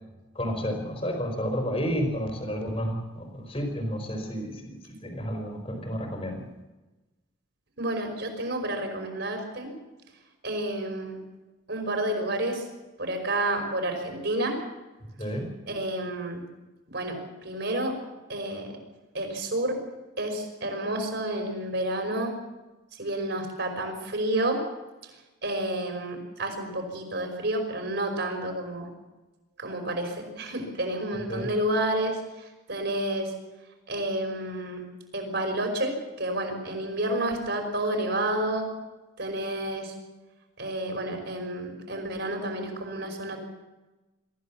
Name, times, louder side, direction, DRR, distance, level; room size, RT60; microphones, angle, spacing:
voice 1, 0.3-4.7 5.0-6.4 15.2-15.5 31.3-31.5, equal, 30° left, 4 dB, 4.8 m, -31 dB
voice 2, 7.8-9.7 10.4-11.2 11.7-12.6 13.0-14.6 15.2-15.3 15.7-16.4 16.9-18.0 18.3-18.8 19.1-19.8 20.2-22.3 22.9-24.6 25.4-28.9 29.6-33.3 33.9-34.8 35.1-38.7 39.2-39.9 40.6-43.4, right 1 dB, 55° right, 4 dB, 5.5 m, -30 dB
24.0 x 15.5 x 7.3 m, 1.1 s
head